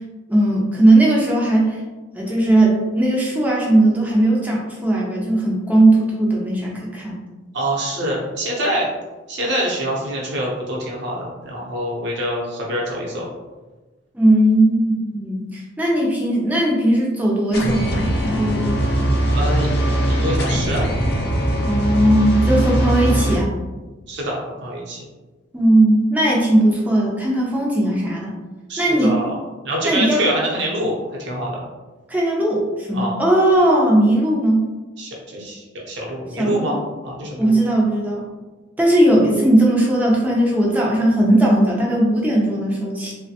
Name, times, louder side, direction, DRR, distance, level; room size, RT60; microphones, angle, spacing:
voice 1, 0.3-1.8 2.1-7.2 14.1-18.8 21.6-23.6 25.5-28.4 28.8-29.1 29.8-30.2 32.1-34.7 36.4-36.7 37.4-38.3 38.8-43.1, right 1 dB, 10° right, -3 dB, 0.4 m, -18 dB
voice 2, 7.5-8.9 9.3-13.3 19.3-19.7 20.1-20.9 24.1-25.0 28.7-29.3 29.6-31.6 32.9-33.2 35.0-36.8 37.0-37.5, right 1 dB, 55° right, -3 dB, 0.7 m, -25 dB
sound 1, 17.5-23.4, right 1 dB, 50° left, 0.5 m, -20 dB
3.2 x 2.1 x 2.7 m, 1.2 s
head